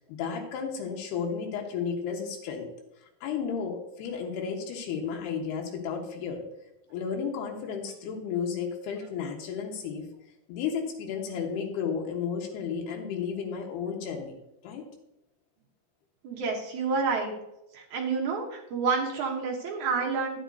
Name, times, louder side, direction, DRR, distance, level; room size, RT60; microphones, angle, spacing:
voice 1, 0.1-2.7 3.2-6.4 6.9-10.1 10.5-14.3 14.6-14.8, left 6 dB, 75° left, 2 dB, 3.3 m, -33 dB
voice 2, 16.2-17.3 17.7-20.4, right 4 dB, 65° right, 0 dB, 2.0 m, -29 dB
10.5 x 10.0 x 2.7 m, 0.90 s
omnidirectional pair, 4.7 m